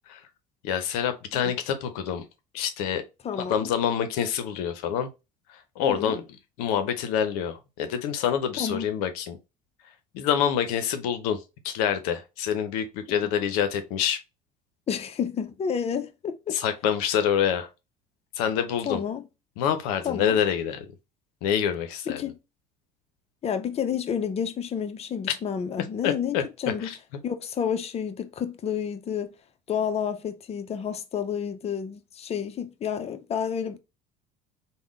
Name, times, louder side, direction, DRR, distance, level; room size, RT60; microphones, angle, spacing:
voice 1, 0.6-2.2 2.5-3.0 3.4-5.1 5.8-6.2 6.6-9.4 10.1-11.4 11.6-14.2 16.5-17.7 18.4-19.0 19.6-20.8 21.4-22.2 26.0-26.4 26.8-27.0, left 8 dB, 75° left, 0.6 m, -26 dB
voice 2, 3.2-3.7 5.8-6.2 8.6-8.9 13.2-13.3 14.9-16.6 18.9-19.2 20.0-20.4 22.1-22.4 23.4-26.9 27.2-29.3 29.7-33.8, left 8 dB, 30° left, 0.6 m, -30 dB
3.5 x 2.2 x 3.6 m
hypercardioid pair, 70°, 20 cm